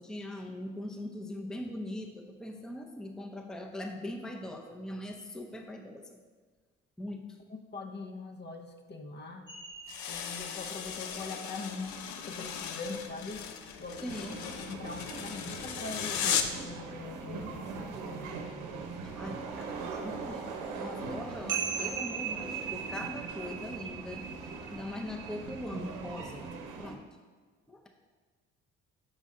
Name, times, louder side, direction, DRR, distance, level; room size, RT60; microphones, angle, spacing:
voice 1, 0.0-6.2 7.0-7.3 14.0-14.4 19.0-24.3 24.7-26.5 26.8-27.1 27.7-27.9, left 1 dB, ahead, 2 dB, 0.6 m, -41 dB
voice 2, 7.7-9.5 10.1-11.9 12.2-13.4 13.8-18.9, left 3 dB, 35° left, 4 dB, 0.7 m, -42 dB
sound 1, 9.5-15.7 16.1-16.2 16.5-17.9 18.3-18.4 18.7-26.7, right 7 dB, 40° right, 1.0 m, -41 dB
sound 2, 9.9-16.7, left 8 dB, 75° left, 0.6 m, -36 dB
sound 3, 14.1-26.9, right 4 dB, 85° right, 0.7 m, -41 dB
6.5 x 4.1 x 3.6 m, 1.4 s
supercardioid pair, 65°, 29 cm